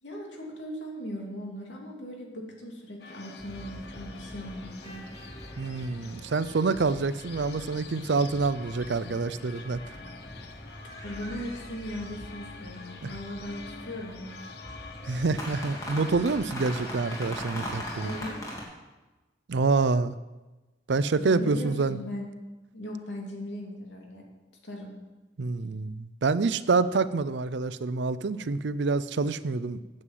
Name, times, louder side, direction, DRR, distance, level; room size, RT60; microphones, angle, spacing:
voice 1, 0.0-5.0 11.0-14.5 18.0-18.6 21.2-22.3 22.7-24.3 24.6-24.9, left 1 dB, 85° left, -1 dB, 2.7 m, -38 dB
sound 1, 3.0-18.3, left 4 dB, 60° left, 0.9 m, -46 dB
sound 2, 3.4-18.6, equal, 20° left, 2.4 m, -42 dB
voice 2, 5.6-9.8 13.0-13.1 15.1-18.1 19.5-20.2 20.9-22.0 25.4-29.8, right 4 dB, 75° right, 15 dB, 0.5 m, -27 dB
9.8 x 7.7 x 7.6 m, 1.1 s
head